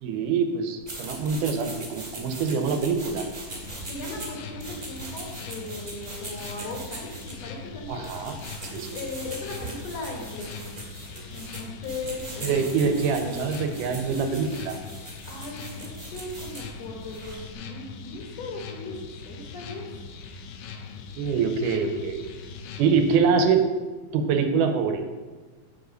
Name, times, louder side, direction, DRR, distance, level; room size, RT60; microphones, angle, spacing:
voice 1, 0.0-3.3 7.9-8.4 8.7-8.9 12.4-14.8 21.2-22.3 22.8-23.7 24.1-25.1, right 5 dB, 90° right, 6 dB, 2.3 m, -24 dB
sound 1, 0.8-17.5, right 2 dB, 25° right, 2.0 m, -41 dB
sound 2, 3.5-23.2, left 5 dB, 80° left, 2.1 m, -41 dB
voice 2, 3.9-8.1 8.7-10.7 11.0-12.9 15.3-20.0, left 2 dB, 60° left, 0 dB, 2.2 m, -38 dB
7.3 x 4.9 x 6.4 m, 1.3 s
omnidirectional pair, 3.7 m